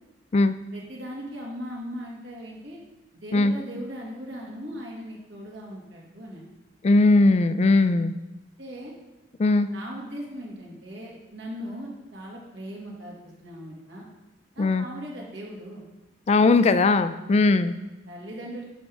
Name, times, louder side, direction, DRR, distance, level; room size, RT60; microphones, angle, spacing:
voice 1, 0.7-2.8 3.1-6.4 8.6-8.9 9.4-14.0 14.5-15.8 17.2-17.6 18.1-18.6, equal, 90° right, -3 dB, 2.1 m, -39 dB
voice 2, 6.8-8.2 9.4-9.7 14.6-14.9 16.3-17.7, left 3 dB, 35° left, 12 dB, 0.3 m, -19 dB
11.0 x 5.3 x 3.5 m, 1.1 s
head